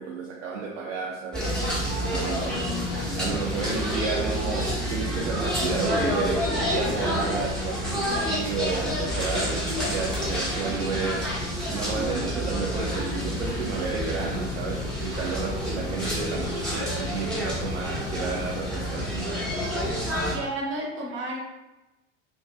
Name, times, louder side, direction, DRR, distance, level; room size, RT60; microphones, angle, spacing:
voice 1, 0.0-1.5 2.1-2.7 3.1-11.3 11.7-19.6, right 4 dB, 70° right, -2 dB, 0.5 m, -32 dB
sound 1, 1.3-20.3, equal, ahead, 0.8 m, -28 dB
voice 2, 20.3-21.4, right 1 dB, 30° right, -2 dB, 0.8 m, -31 dB
2.4 x 2.2 x 2.5 m, 1.0 s
figure-of-eight pair, 75°, 38 cm